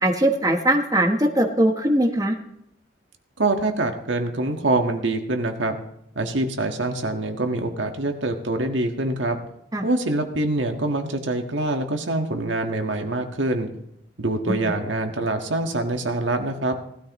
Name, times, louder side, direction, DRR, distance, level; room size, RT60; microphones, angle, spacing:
voice 1, 0.0-2.3 9.7-9.8 14.5-14.6, right 1 dB, 20° right, 4 dB, 1.1 m, -20 dB
voice 2, 3.4-5.8 6.1-9.4 9.8-13.7 14.2-16.7, right 2 dB, 85° right, 4 dB, 1.6 m, -25 dB
18.5 x 13.0 x 3.1 m, 0.77 s
head